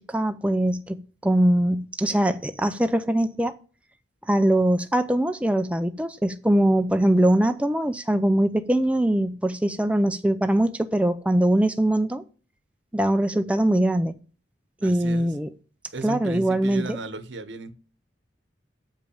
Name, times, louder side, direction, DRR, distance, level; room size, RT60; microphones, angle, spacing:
voice 1, 0.1-3.6 4.3-12.2 12.9-14.2 14.8-15.5 16.0-17.0, right 1 dB, 5° right, 0.5 m, -22 dB
voice 2, 14.8-15.3 15.9-17.7, right 3 dB, 90° right, 1.1 m, -35 dB
7.4 x 5.2 x 7.0 m
head